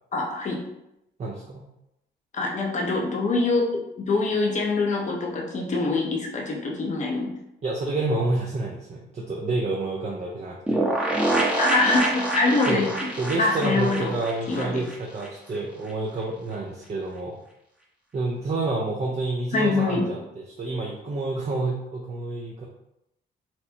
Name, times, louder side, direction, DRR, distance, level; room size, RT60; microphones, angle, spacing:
voice 1, 0.1-0.6 2.3-7.3 11.6-13.1 13.4-14.1 14.5-14.8 19.5-20.1, left 3 dB, 35° left, -1 dB, 0.7 m, -24 dB
voice 2, 1.2-1.6 7.6-10.8 12.7-12.9 13.2-17.4 18.1-20.2 20.6-22.7, right 2 dB, 35° right, -2 dB, 0.5 m, -28 dB
sound 1, 10.7-15.3 15.5-15.6 15.9-16.0, right 2 dB, 5° right, 0.7 m, -26 dB
4.3 x 2.0 x 2.7 m, 0.86 s
cardioid pair, 90°, 20 cm